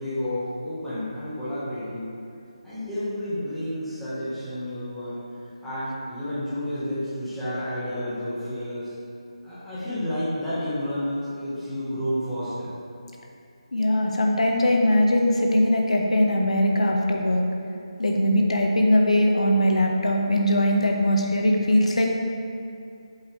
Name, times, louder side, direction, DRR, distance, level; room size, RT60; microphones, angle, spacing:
voice 1, 0.0-2.1 2.6-8.9 9.4-12.7, left 1 dB, ahead, -15 dB, 1.5 m, -30 dB
voice 2, 13.7-17.4 18.0-22.1, left 1 dB, 90° left, 1 dB, 1.4 m, -21 dB
8.1 x 7.6 x 3.4 m, 2.5 s
hypercardioid pair, 180°, 3 cm